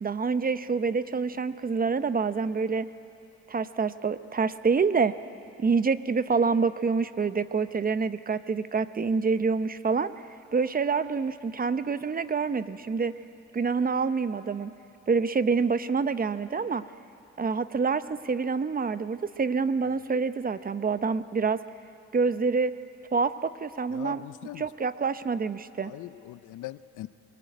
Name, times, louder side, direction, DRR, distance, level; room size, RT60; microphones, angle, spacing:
voice 1, 0.0-2.9 3.5-5.1 5.6-10.1 10.5-13.1 13.5-14.7 15.1-16.8 17.4-21.6 22.1-22.7 23.1-24.2 24.6-25.9, right 5 dB, 30° right, 13 dB, 0.8 m, -27 dB
voice 2, 23.9-24.6 25.9-27.1, left 16 dB, 85° left, 15 dB, 0.7 m, -41 dB
22.5 x 21.0 x 9.3 m, 2.8 s
cardioid pair, 90°, 30 cm